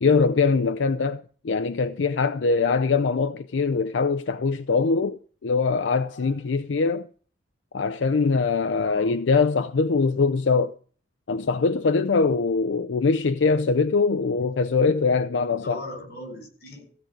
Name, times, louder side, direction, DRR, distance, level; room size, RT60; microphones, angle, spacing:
voice 1, 0.0-7.1 7.7-10.7 11.3-15.8, left 4 dB, 90° left, 0.5 m, -22 dB
voice 2, 8.8-9.2 15.3-17.0, left 1 dB, 55° left, 6.1 m, -40 dB
15.5 x 5.2 x 8.9 m
head